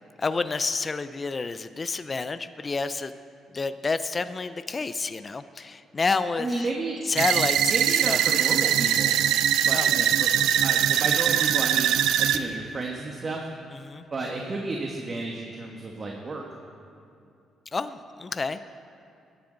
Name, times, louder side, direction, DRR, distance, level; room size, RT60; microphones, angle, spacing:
voice 1, 0.2-3.1 3.5-6.7 7.1-8.7 9.7-10.0 13.8-14.0 17.7-18.6, left 4 dB, 30° left, 12 dB, 0.5 m, -29 dB
voice 2, 6.4-7.0 7.7-9.2 9.7-11.9 12.2-13.4 14.1-16.4, right 3 dB, 35° right, 0 dB, 1.4 m, -32 dB
sound 1, 7.2-12.4, right 10 dB, 90° right, 0.5 m, -22 dB
21.0 x 10.5 x 3.9 m, 2.5 s
cardioid pair, 90°, 0 cm